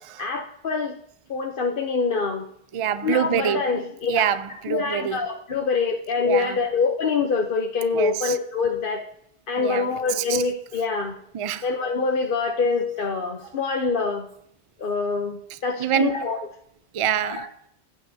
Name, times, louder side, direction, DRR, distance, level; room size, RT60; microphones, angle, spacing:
voice 1, 0.2-0.9 1.3-2.5 3.0-4.2 4.7-9.0 9.5-11.2 11.6-14.3 14.8-16.4 17.3-17.5, left 4 dB, 55° left, 0.9 m, -25 dB
voice 2, 2.7-3.7 4.1-5.2 6.2-6.6 7.9-8.4 9.6-10.4 11.3-11.7 15.5-16.1 16.9-17.5, right 9 dB, 50° right, 0.3 m, -26 dB
15.5 x 9.1 x 2.7 m
omnidirectional pair, 1.1 m